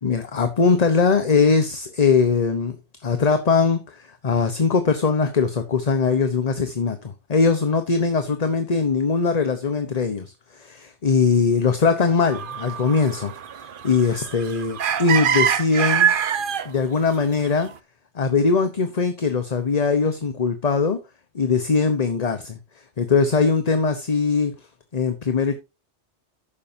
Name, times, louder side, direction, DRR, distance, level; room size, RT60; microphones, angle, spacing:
voice 1, 0.0-2.8 3.0-13.3 13.8-16.1 16.6-17.7 18.1-21.0 21.3-22.6 23.0-24.5 24.9-25.6, left 5 dB, 35° left, 1.0 m, -21 dB
sound 1, 12.3-16.7 17.4-17.5, right 8 dB, 50° right, 0.8 m, -24 dB
11.5 x 8.7 x 2.7 m
omnidirectional pair, 1.2 m